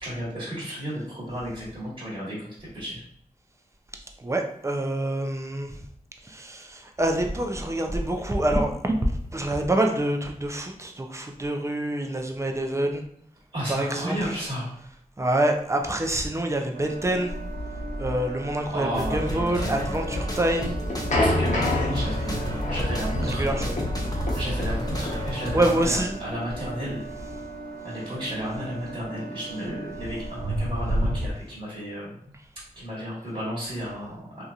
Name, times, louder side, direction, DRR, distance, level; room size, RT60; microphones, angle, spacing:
voice 1, 0.0-2.5 2.7-3.0 13.5-14.7 18.7-19.9 21.2-23.4 24.3-27.0 27.8-32.1 32.7-34.4, equal, 35° right, -8 dB, 1.4 m, -33 dB
voice 2, 4.2-5.8 6.2-13.0 13.7-14.4 15.2-17.3 18.0-20.8 23.2-23.7 25.5-26.2, right 1 dB, 20° right, 3 dB, 0.5 m, -26 dB
sound 1, 16.7-31.3, right 1 dB, 90° right, 0.5 m, -33 dB
sound 2, 18.9-25.8, left 1 dB, 25° left, 0.7 m, -32 dB
sound 3, 20.6-27.3, left 1 dB, 55° left, 0.9 m, -29 dB
2.8 x 2.6 x 2.4 m, 0.65 s
cardioid pair, 50°, 15 cm